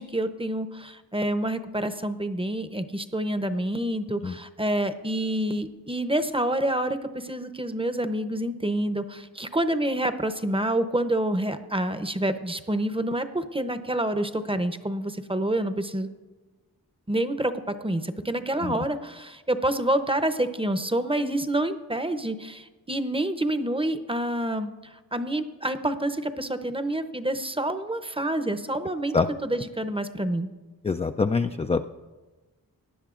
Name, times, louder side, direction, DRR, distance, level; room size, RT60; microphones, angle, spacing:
voice 1, 0.0-16.1 17.1-29.2 29.4-30.5, right 1 dB, 15° right, 10 dB, 0.7 m, -28 dB
voice 2, 30.8-31.9, left 4 dB, 20° left, 7 dB, 0.3 m, -24 dB
18.0 x 10.0 x 2.5 m, 1.2 s
cardioid pair, 40°, 38 cm